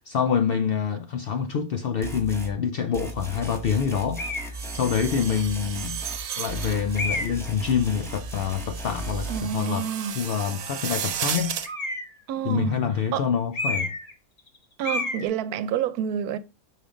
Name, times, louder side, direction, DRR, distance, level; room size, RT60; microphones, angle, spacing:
voice 1, 0.0-4.2 4.7-6.0 6.4-9.9 10.2-11.6 12.5-13.9, left 7 dB, 75° left, 0.5 m, -26 dB
sound 1, 2.0-2.5 2.9-6.2 6.5-9.4, right 1 dB, 5° left, 0.6 m, -36 dB
sound 2, 4.2-4.6 5.4-5.5 6.9-7.5 11.6-12.2 13.5-14.1 14.4-14.6 14.8-15.2, left 2 dB, 30° left, 0.9 m, -29 dB
sound 3, 4.5-11.7, right 8 dB, 70° right, 1.1 m, -35 dB
voice 2, 9.3-10.2 12.3-12.8 13.1-13.3 14.8-16.4, right 8 dB, 85° right, 1.1 m, -28 dB
6.2 x 5.0 x 3.6 m
omnidirectional pair, 1.5 m